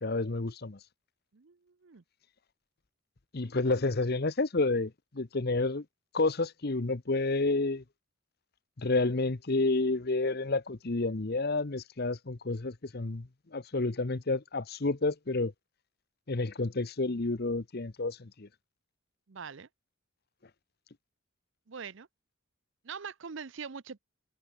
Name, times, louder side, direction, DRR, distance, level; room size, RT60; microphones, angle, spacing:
voice 1, 0.0-0.8 3.3-5.8 6.1-7.8 8.8-15.5 16.3-18.5, left 3 dB, 45° left, 0.9 m, -30 dB
voice 2, 1.3-2.0 19.3-19.7 21.7-22.1 22.8-24.0, right 6 dB, 60° right, 0.6 m, -43 dB
head